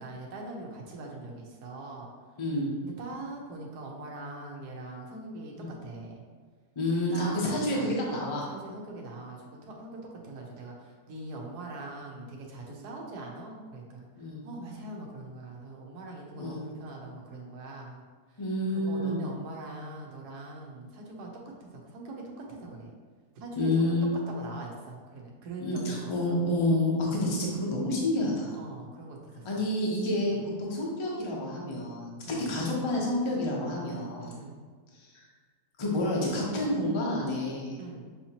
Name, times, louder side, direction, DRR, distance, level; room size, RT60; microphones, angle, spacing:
voice 1, 0.0-2.1 2.8-6.2 7.1-14.1 14.4-18.0 18.3-18.4 18.7-21.3 21.6-22.2 22.5-22.9 23.3-23.9 24.3-26.4 28.6-29.6 30.2-30.4 32.3-32.5 34.2-34.6 37.8-38.1, right 2 dB, 75° right, -1 dB, 1.3 m, -42 dB
voice 2, 2.4-2.7 6.8-8.4 12.7-12.9 14.2-14.4 16.4-16.6 18.4-19.2 23.6-24.1 25.6-28.6 29.4-34.3 34.9-35.3 35.8-37.7, left 1 dB, 30° left, -3 dB, 0.5 m, -29 dB
6.3 x 2.8 x 2.9 m, 1.5 s
omnidirectional pair, 1.7 m